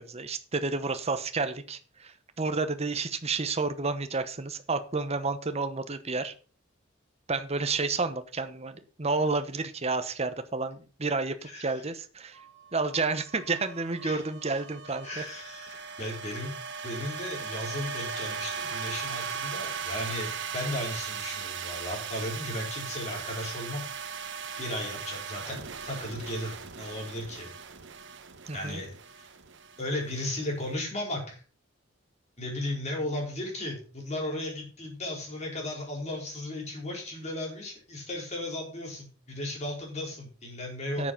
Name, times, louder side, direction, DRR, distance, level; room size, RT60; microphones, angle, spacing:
voice 1, 0.0-6.3 7.3-12.4 12.7-15.2 28.5-28.8 41.0-41.1, right 3 dB, 30° right, 10 dB, 1.0 m, -30 dB
sound 1, 12.3-30.6, right 6 dB, 65° right, 1.2 m, -38 dB
voice 2, 14.0-14.5 15.0-16.5 16.8-23.9 24.6-27.5 28.5-29.0 29.8-31.4 32.4-41.1, left 1 dB, 35° left, -1 dB, 5.0 m, -35 dB
9.8 x 7.5 x 5.7 m, 0.38 s
head